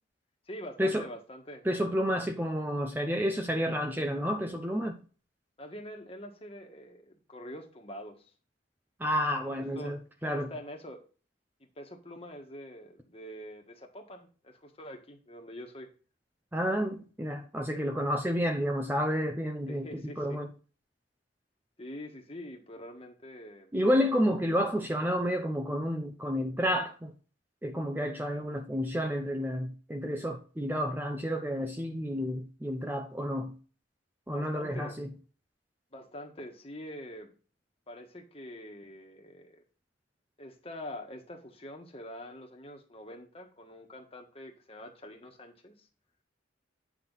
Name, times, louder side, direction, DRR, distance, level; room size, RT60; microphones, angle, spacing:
voice 1, 0.5-1.6 5.6-8.3 9.6-10.0 10.2-11.0 11.8-15.9 19.7-20.4 21.8-23.7 34.3-35.0 35.9-37.3 37.9-39.6 40.4-45.9, left 1 dB, 30° left, 1.5 m, -45 dB
voice 2, 1.6-5.0 9.0-10.5 16.5-20.5 23.7-27.1 27.6-33.5 34.3-35.1, equal, 10° right, 0.7 m, -30 dB
9.2 x 5.9 x 4.0 m
head